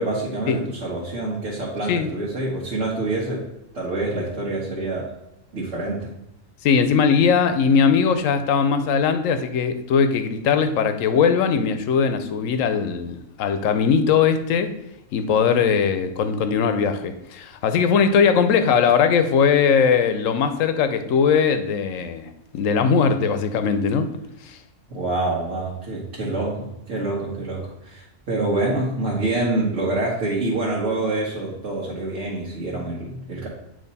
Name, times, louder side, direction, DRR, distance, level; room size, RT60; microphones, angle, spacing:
voice 1, 0.0-3.5 3.7-5.1 5.5-6.1 24.9-33.5, right 2 dB, 65° right, -5 dB, 1.6 m, -26 dB
voice 2, 6.6-14.7 15.1-24.1 24.5-24.6, left 6 dB, 80° left, 9 dB, 1.0 m, -20 dB
8.7 x 3.2 x 4.0 m, 0.86 s
omnidirectional pair, 1.4 m